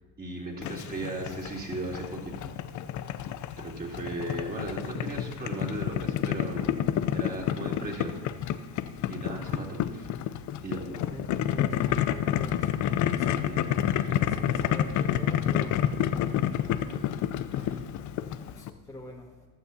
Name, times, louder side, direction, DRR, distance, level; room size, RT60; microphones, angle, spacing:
voice 1, 0.2-2.5 3.6-6.7 7.1-8.2 9.1-10.1 10.6-11.1 13.5-14.1 17.0-17.1 17.5-17.8, right 2 dB, 20° right, -2 dB, 3.0 m, -37 dB
Boiling, 0.6-18.7, left 10 dB, 45° left, 0.6 m, -29 dB
voice 2, 11.1-12.9 13.1-13.5 14.3-17.4 18.1-19.5, left 1 dB, 10° left, -3 dB, 1.7 m, -45 dB
15.5 x 11.5 x 2.8 m, 1.2 s
supercardioid pair, 95°, 41 cm